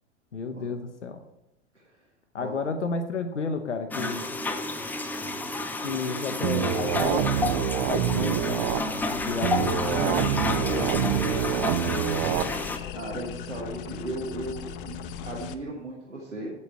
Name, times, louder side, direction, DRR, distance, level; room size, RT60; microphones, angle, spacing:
voice 1, 0.3-1.2 2.3-4.3 5.8-8.7 9.3-11.0, left 4 dB, 80° left, 7 dB, 0.8 m, -32 dB
sound 1, 3.9-12.8, left 2 dB, 5° left, 0.6 m, -30 dB
sound 2, 6.4-8.8 9.4-12.4, right 10 dB, 45° right, 0.6 m, -26 dB
sound 3, 8.7-15.5, left 8 dB, 50° left, 0.7 m, -38 dB
voice 2, 12.9-16.5, right 1 dB, 85° right, -3 dB, 1.6 m, -36 dB
8.5 x 7.9 x 4.6 m, 0.91 s
figure-of-eight pair, 90°, 35 cm